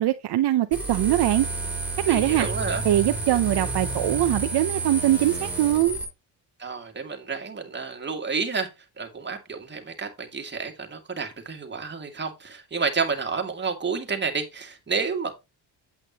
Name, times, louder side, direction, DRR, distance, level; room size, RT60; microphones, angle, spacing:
voice 1, 0.0-1.5 2.1-2.5 2.8-6.0, right 14 dB, 55° right, 0.8 m, -22 dB
sound 1, 0.7-6.0, right 3 dB, 5° right, 4.0 m, -30 dB
voice 2, 2.1-2.8 6.6-8.7 9.0-15.3, right 5 dB, 20° right, 2.1 m, -30 dB
8.7 x 8.2 x 2.9 m
cardioid pair, 110°, 47 cm